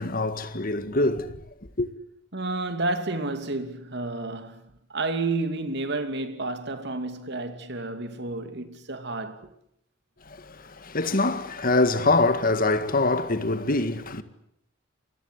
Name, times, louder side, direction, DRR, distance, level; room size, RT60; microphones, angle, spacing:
voice 1, 0.0-1.3 1.8-1.9 10.5-14.2, left 2 dB, 45° left, 1.9 m, -24 dB
voice 2, 2.3-9.5, right 2 dB, 55° right, 2.7 m, -31 dB
28.0 x 22.0 x 8.3 m
head